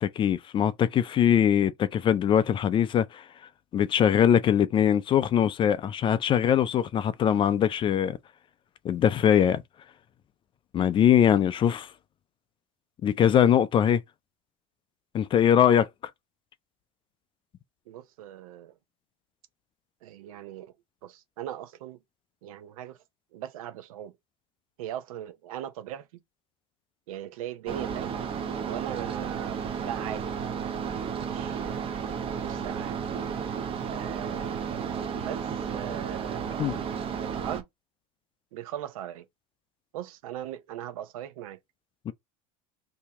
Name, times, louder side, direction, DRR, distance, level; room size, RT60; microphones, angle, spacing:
voice 1, 0.0-3.2 3.7-8.2 8.8-9.6 10.7-11.9 13.0-14.0 15.1-15.9 36.6-36.8 42.1-42.2, left 9 dB, 30° left, 0.4 m, -22 dB
voice 2, 17.9-18.7 20.0-20.7 21.0-22.0 22.4-23.0 23.3-24.1 24.8-26.1 27.1-28.1 28.6-30.3 31.1-32.0 32.3-33.0 33.9-34.8 35.1-36.8 37.2-37.6 38.5-39.2 39.9-41.6, right 11 dB, 85° right, 0.7 m, -39 dB
sound 1, 27.7-37.6, right 7 dB, 30° right, 0.7 m, -33 dB
2.8 x 2.8 x 3.5 m
supercardioid pair, 110°, 17 cm